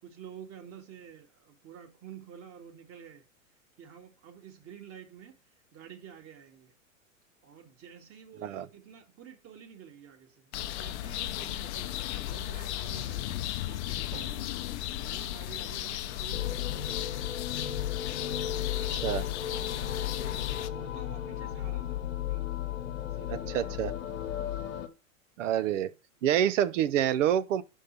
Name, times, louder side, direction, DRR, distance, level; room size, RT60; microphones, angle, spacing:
voice 1, 0.0-3.3 3.8-6.7 7.4-14.5 15.0-17.3 18.4-22.6 23.1-23.8 24.5-24.7 25.5-26.0, right 8 dB, 35° right, 1.9 m, -50 dB
sound 1, 10.5-20.7, left 14 dB, 55° left, 0.7 m, -36 dB
Drum, 14.1-16.2, right 7 dB, 85° right, 1.8 m, -53 dB
sound 2, 16.3-24.9, left 11 dB, 75° left, 1.2 m, -34 dB
voice 2, 23.3-23.9 25.4-25.9 26.2-27.6, right 10 dB, 65° right, 0.8 m, -27 dB
5.6 x 5.5 x 6.7 m
hypercardioid pair, 110°, 41 cm